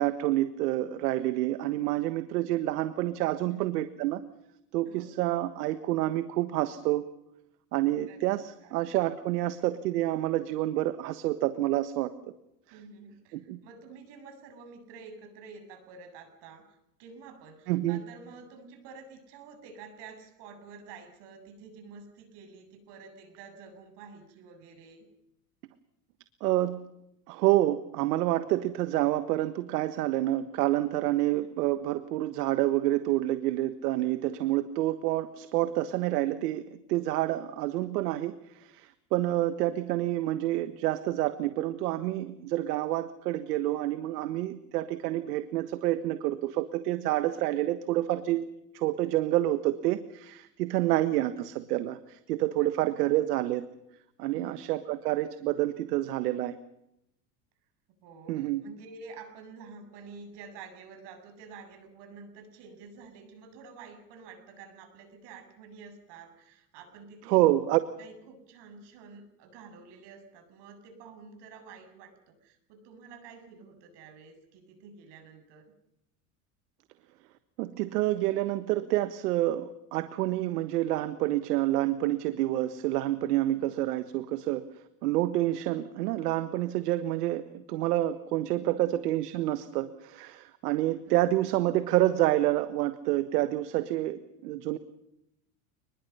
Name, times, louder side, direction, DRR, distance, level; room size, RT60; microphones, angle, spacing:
voice 1, 0.0-4.2 4.7-7.1 7.7-12.1 13.3-13.6 17.7-18.0 26.4-26.9 27.3-48.5 48.7-53.7 54.2-56.6 58.3-58.6 67.3-67.8 77.6-84.6 85.0-94.8, right 15 dB, 80° right, 11 dB, 1.5 m, -28 dB
voice 2, 12.7-25.1 31.4-31.5 39.2-39.5 50.8-51.0 52.6-52.7 53.0-53.2 54.3-54.7 58.0-67.5 68.0-75.7 88.6-89.0 90.7-90.8 91.1-91.2, right 5 dB, 60° right, 7 dB, 7.7 m, -49 dB
29.5 x 21.0 x 5.6 m, 0.82 s
supercardioid pair, 100°, 46 cm